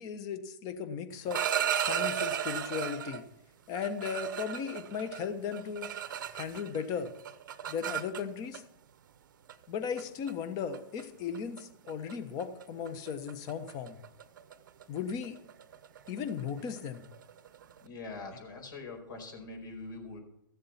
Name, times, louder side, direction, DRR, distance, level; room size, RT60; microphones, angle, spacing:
voice 1, 0.0-1.5 1.7-3.2 3.7-5.9 6.3-7.1 7.7-8.6 9.7-14.0 14.9-15.4 16.1-17.1, left 7 dB, 30° left, 10 dB, 1.2 m, -36 dB
sound 1, 1.1-3.2 3.7-6.8 7.1-8.6 9.5-9.6 10.0-10.3 10.7-11.0 11.3-11.6 11.9-12.1 12.4-17.8, right 9 dB, 65° right, 0.8 m, -35 dB
voice 2, 17.8-20.2, left 3 dB, 65° left, 2 dB, 4.8 m, -43 dB
14.0 x 7.5 x 5.8 m, 0.77 s
hypercardioid pair, 125°, 11 cm